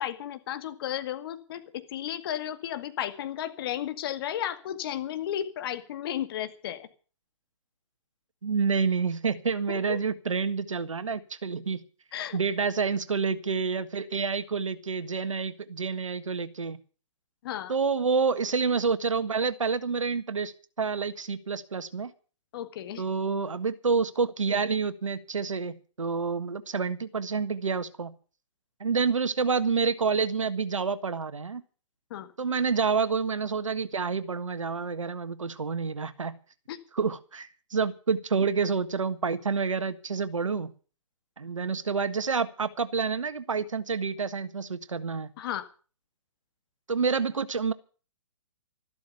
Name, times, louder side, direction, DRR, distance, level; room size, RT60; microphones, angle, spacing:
voice 1, 0.0-6.9 9.7-10.0 12.1-12.4 17.4-17.7 22.5-23.0 32.1-32.3 36.7-36.8 45.4-45.7, left 11 dB, 50° left, 9 dB, 2.1 m, -34 dB
voice 2, 8.4-11.8 12.3-16.8 17.7-20.5 20.8-22.1 23.0-28.1 28.8-31.6 32.4-36.4 36.9-40.7 41.4-45.3 46.9-47.7, right 5 dB, 85° right, 12 dB, 1.5 m, -28 dB
13.5 x 12.5 x 6.8 m, 0.39 s
hypercardioid pair, 130°, 16 cm